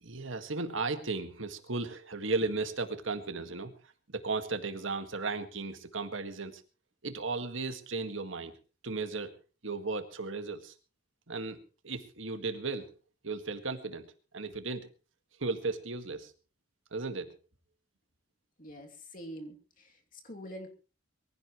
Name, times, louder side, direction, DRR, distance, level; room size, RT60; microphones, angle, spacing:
voice 1, 0.0-3.7 4.1-6.6 7.0-8.6 8.8-9.3 9.6-10.7 11.3-12.9 13.2-14.9 15.4-16.3 16.9-17.3, right 3 dB, 75° right, 8 dB, 1.9 m, -35 dB
voice 2, 18.6-20.7, equal, 40° left, 2 dB, 2.8 m, -45 dB
23.0 x 16.0 x 3.2 m, 0.35 s
head